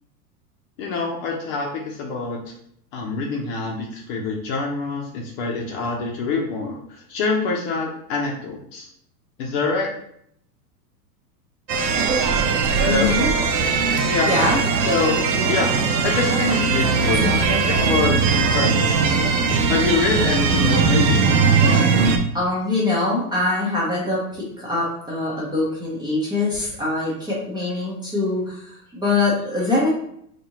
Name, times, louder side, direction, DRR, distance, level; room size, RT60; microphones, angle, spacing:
voice 1, 0.8-2.4 2.9-6.8 7.1-8.9 9.4-9.9 12.8-13.1 14.1-14.3 14.9-15.2 15.5-15.7 16.0-17.2 17.7-18.9 19.7-21.2, left 4 dB, 50° left, -1 dB, 0.9 m, -25 dB
sound 1, 11.7-22.2, right 4 dB, 85° right, 0.8 m, -19 dB
voice 2, 12.9-13.3 14.3-14.6 17.1-17.3 22.3-29.9, left 2 dB, 10° right, -6 dB, 0.9 m, -23 dB
4.1 x 2.6 x 3.0 m, 0.69 s
hypercardioid pair, 120°, 50 cm